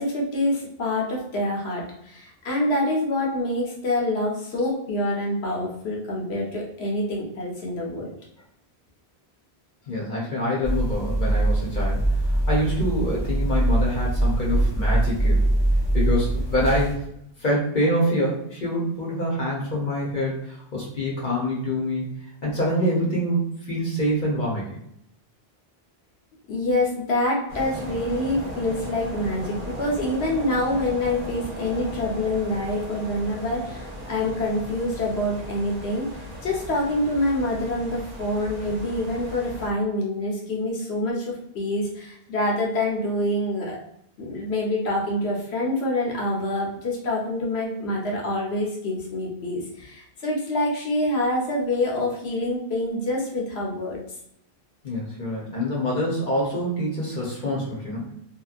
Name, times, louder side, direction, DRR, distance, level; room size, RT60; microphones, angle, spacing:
voice 1, 0.0-8.1 26.5-43.8 44.2-54.0, left 1 dB, 80° left, -2 dB, 1.1 m, -26 dB
voice 2, 9.9-15.5 15.9-17.0 17.4-22.1 22.4-24.8 54.8-58.1, equal, 55° left, -5 dB, 0.8 m, -26 dB
sound 1, 10.6-16.9, right 1 dB, 35° left, 0.5 m, -23 dB
sound 2, 27.5-39.7, equal, 55° right, 0.8 m, -37 dB
2.8 x 2.2 x 2.4 m, 0.74 s
omnidirectional pair, 1.1 m